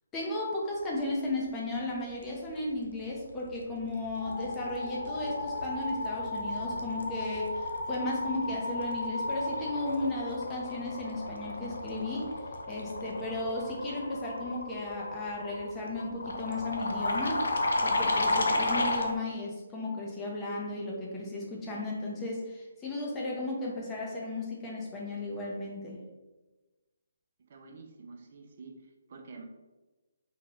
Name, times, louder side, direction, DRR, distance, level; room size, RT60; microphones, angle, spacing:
voice 1, 0.1-12.3 12.7-17.4 17.8-26.0, left 2 dB, 15° left, -3 dB, 0.7 m, -35 dB
sound 1, 3.3-3.6 3.9-19.1, left 2 dB, 75° left, 0.6 m, -33 dB
voice 2, 27.5-29.4, right 4 dB, 50° right, 3 dB, 0.4 m, -48 dB
3.7 x 2.9 x 3.0 m, 1.2 s
hypercardioid pair, 160°, 0 cm